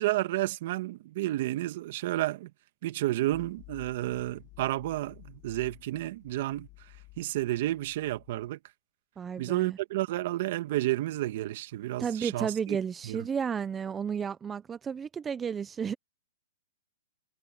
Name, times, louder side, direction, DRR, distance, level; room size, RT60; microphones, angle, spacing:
voice 1, 0.0-2.5 2.8-6.7 7.2-8.6 9.4-12.8 13.0-13.3, right 16 dB, 50° right, 1.6 m, -31 dB
sound 1, 3.3-8.5, left 22 dB, 35° left, 2.6 m, -53 dB
voice 2, 9.2-9.8 12.0-15.9, right 7 dB, 15° right, 0.6 m, -32 dB
hypercardioid pair, 150°, 0 cm